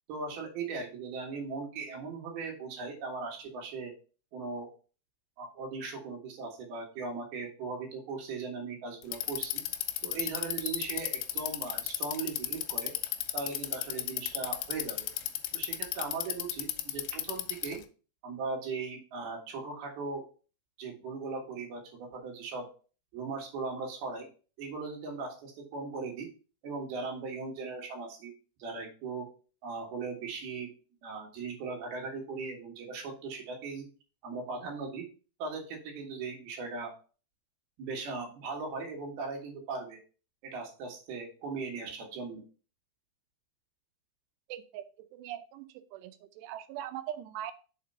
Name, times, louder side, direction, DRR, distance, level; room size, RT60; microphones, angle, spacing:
voice 1, 0.1-3.9 4.3-4.7 5.4-9.6 10.0-12.9 13.3-15.1 15.5-17.8 18.2-20.2 20.8-22.7 23.1-24.3 24.6-26.3 26.6-28.3 28.6-29.3 29.6-30.7 31.0-33.9 34.2-35.1 35.4-36.9 37.8-40.0 40.4-42.4, right 4 dB, 65° right, 1 dB, 3.2 m, -38 dB
Bicycle, 9.0-17.8, left 13 dB, 85° left, 2.7 m, -34 dB
voice 2, 44.5-47.5, right 12 dB, 80° right, 9 dB, 2.5 m, -41 dB
6.6 x 4.4 x 5.4 m, 0.36 s
omnidirectional pair, 5.4 m